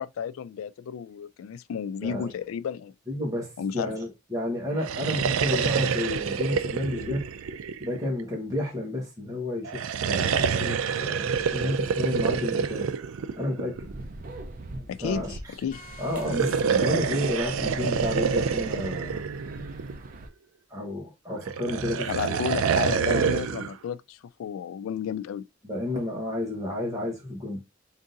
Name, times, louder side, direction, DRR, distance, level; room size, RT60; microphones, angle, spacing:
voice 1, 0.0-2.9 3.6-3.9 14.9-15.3 15.6-15.8 22.1-25.4, left 7 dB, 85° left, 0.3 m, -32 dB
voice 2, 3.1-7.2 7.8-12.9 13.4-13.9 14.8-15.4 16.0-19.7 20.7-22.4 23.0-23.2 25.6-27.6, left 1 dB, 15° right, 1.1 m, -31 dB
sound 1, 4.7-8.3 9.6-14.0 16.2-20.2 21.5-23.7, right 6 dB, 90° right, 0.4 m, -27 dB
sound 2, 13.7-20.3, right 1 dB, 45° right, 0.6 m, -42 dB
sound 3, 15.7-18.8, equal, 40° left, 1.0 m, -50 dB
3.7 x 2.6 x 3.8 m
head